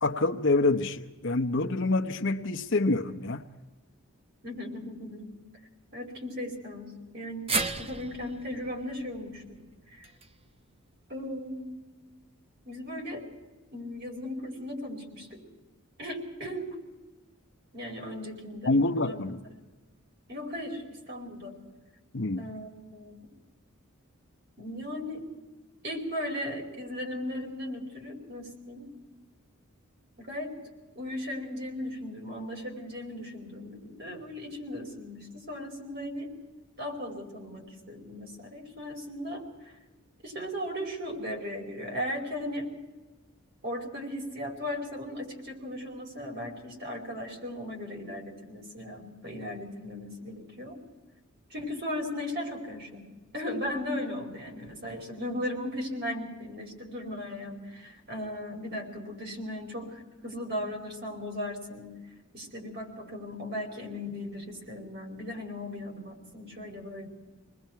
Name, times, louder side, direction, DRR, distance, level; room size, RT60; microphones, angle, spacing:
voice 1, 0.0-3.4 18.7-19.4 22.1-22.4, left 2 dB, 55° left, 0.9 m, -26 dB
voice 2, 4.4-5.3 5.9-9.6 9.9-10.0 11.1-11.7 12.6-13.3 13.7-15.4 16.0-16.8 17.7-18.7 19.0-19.2 20.3-21.6 22.4-23.2 24.6-25.2 25.8-28.9 30.2-30.5 30.9-36.3 36.8-39.4 40.2-42.7 43.6-50.8 51.5-53.1 53.3-62.0 62.3-67.1, left 1 dB, 50° right, 4.8 m, -37 dB
sound 1, 7.5-11.7 12.1-12.2 13.4-13.5, right 4 dB, 25° right, 0.7 m, -37 dB
27.5 x 20.5 x 4.6 m
head